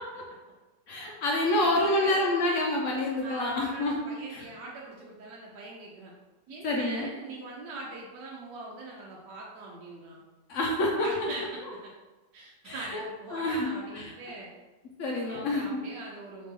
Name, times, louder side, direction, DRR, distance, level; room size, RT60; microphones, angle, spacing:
voice 1, 0.9-3.9 6.6-7.1 10.5-11.1 12.6-13.0 13.3-13.7 13.9-14.0 15.0-15.6, left 1 dB, 70° left, -2 dB, 0.7 m, -27 dB
voice 2, 1.6-2.3 3.2-6.1 6.5-10.2 11.0-11.9 12.3-14.5 15.2-16.5, right 2 dB, 80° right, -3 dB, 1.2 m, -42 dB
3.2 x 3.2 x 3.4 m, 1.2 s
omnidirectional pair, 1.9 m